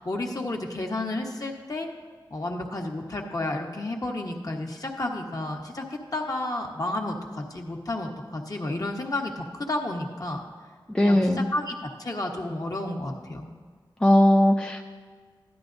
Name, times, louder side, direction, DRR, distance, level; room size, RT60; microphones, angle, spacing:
voice 1, 0.0-1.9 2.3-5.8 6.1-10.4 11.0-13.5, left 2 dB, 45° left, 1 dB, 1.2 m, -31 dB
voice 2, 10.9-11.5 14.0-14.8, left 1 dB, 10° left, 1 dB, 0.6 m, -19 dB
13.0 x 10.5 x 2.6 m, 1.5 s
wide cardioid pair, 70°, 9 cm